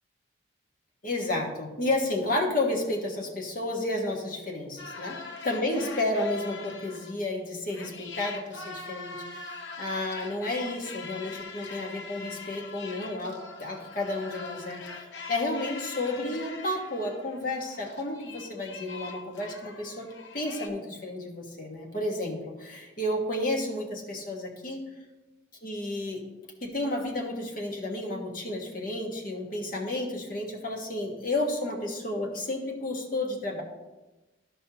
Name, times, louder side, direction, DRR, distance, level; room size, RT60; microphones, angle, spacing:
voice 1, 1.0-5.2 5.4-20.1 20.3-24.8 25.6-26.2 26.6-33.6, left 2 dB, 45° left, 0 dB, 1.3 m, -31 dB
sound 1, 4.8-7.3 7.7-20.7, left 4 dB, 70° left, 0.9 m, -43 dB
13.5 x 5.4 x 2.9 m, 1.1 s
head